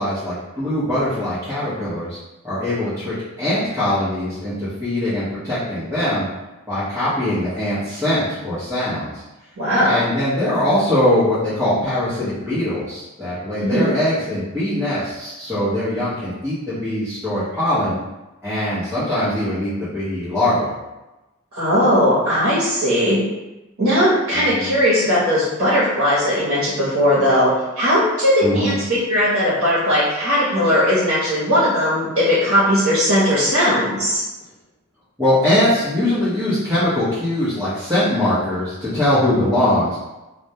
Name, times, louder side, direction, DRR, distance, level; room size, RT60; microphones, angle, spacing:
voice 1, 0.0-2.2 2.4-6.3 6.7-9.2 9.8-18.0 18.4-20.7 24.3-24.7 28.4-28.8 35.2-40.0, left 1 dB, 10° right, -15 dB, 0.7 m, -21 dB
voice 2, 9.6-10.0 13.6-13.9 21.5-23.2 23.8-34.2, equal, 70° right, -9 dB, 0.8 m, -18 dB
2.1 x 2.1 x 2.7 m, 1.0 s
head